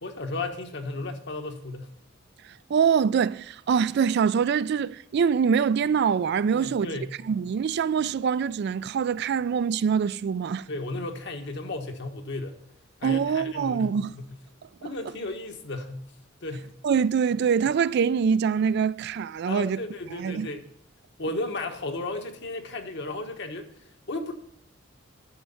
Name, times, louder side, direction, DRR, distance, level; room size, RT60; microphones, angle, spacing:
voice 1, 0.0-1.9 6.5-7.1 10.7-12.5 13.0-14.3 14.8-16.1 16.4-16.7 19.5-20.6 21.2-23.7 24.1-24.3, left 2 dB, 60° left, 1.3 m, -34 dB
voice 2, 2.7-6.9 7.2-10.7 13.0-14.1 16.8-19.8 20.2-20.5, right 6 dB, 55° right, 0.3 m, -24 dB
10.5 x 6.4 x 5.6 m
head